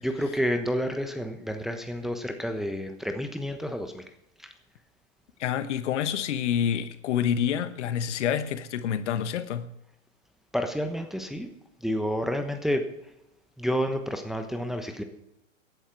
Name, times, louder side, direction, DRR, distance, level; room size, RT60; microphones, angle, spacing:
voice 1, 0.0-4.1 4.4-4.5 10.5-11.5 11.8-12.9 13.6-15.0, equal, ahead, 6 dB, 1.1 m, -29 dB
voice 2, 5.4-9.7, left 9 dB, 60° left, 12 dB, 1.3 m, -27 dB
17.5 x 11.0 x 4.8 m, 0.85 s
hypercardioid pair, 115°, 39 cm